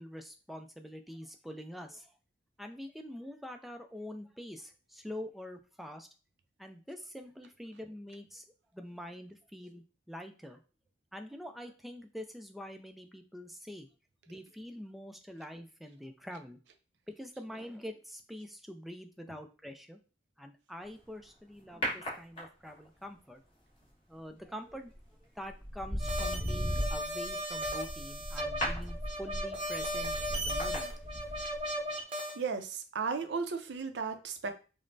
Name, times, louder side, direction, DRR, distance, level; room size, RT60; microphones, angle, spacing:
voice 1, 0.0-2.2 2.6-6.1 6.6-8.4 8.7-10.6 11.1-13.9 14.3-16.6 17.1-20.0 20.4-23.4 24.1-31.0, equal, ahead, 5 dB, 0.3 m, -45 dB
sound 1, 21.8-22.9 24.7-25.0 25.5-31.7 32.0-32.1, equal, 30° left, 1.4 m, -36 dB
sound 2, 26.0-32.4, equal, 30° right, 0.7 m, -36 dB
voice 2, 32.4-34.5, right 5 dB, 65° right, 8 dB, 0.5 m, -35 dB
5.1 x 2.0 x 2.6 m, 0.35 s
head